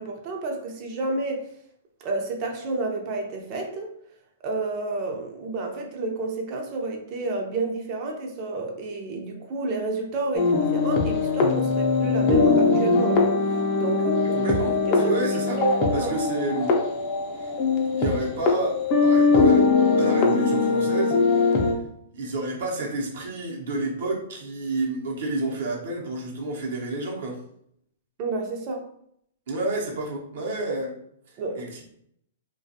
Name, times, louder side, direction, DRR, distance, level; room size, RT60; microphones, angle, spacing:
voice 1, 0.0-1.5 2.0-3.9 4.4-14.4 14.8-15.1 15.6-16.1 28.2-28.8 31.4-31.7, right 3 dB, 35° right, 2 dB, 0.6 m, -30 dB
sound 1, 10.4-21.7, left 4 dB, 35° left, 0.5 m, -21 dB
voice 2, 14.3-15.6 15.9-16.7 17.4-17.5 17.8-21.7 22.1-27.4 29.5-30.9 31.3-31.8, right 2 dB, 70° right, -2 dB, 0.8 m, -30 dB
2.4 x 2.3 x 2.7 m, 0.71 s
hypercardioid pair, 140°, 0 cm